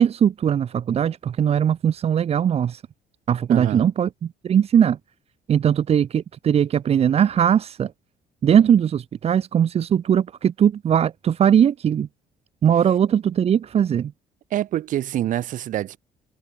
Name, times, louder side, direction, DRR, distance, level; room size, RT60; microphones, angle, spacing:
voice 1, 0.0-2.8 3.3-5.0 5.5-7.9 8.4-12.1 12.6-14.1, right 8 dB, 45° right, 1.6 m, -20 dB
voice 2, 3.5-3.8 14.5-16.0, right 12 dB, 65° right, 7.8 m, -26 dB
cardioid pair, 115°, 14 cm